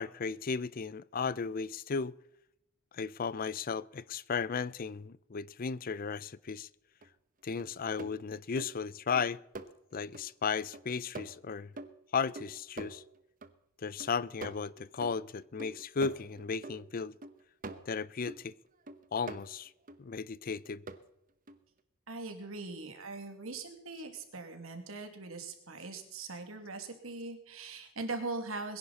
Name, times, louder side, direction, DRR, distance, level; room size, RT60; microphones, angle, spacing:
voice 1, 0.0-2.1 2.9-6.7 7.4-9.4 9.9-11.7 12.1-13.0 13.8-17.1 17.9-18.5 19.1-19.7 20.0-20.8, left 5 dB, 45° left, 0.5 m, -35 dB
sound 1, 7.0-7.1 7.6-10.3 10.7-13.5 13.8-18.5 18.9-20.0 20.5-21.0 21.5-21.6, right 3 dB, 40° right, 1.0 m, -46 dB
voice 2, 22.1-28.8, right 3 dB, 80° right, 2.5 m, -41 dB
22.0 x 10.5 x 4.2 m
head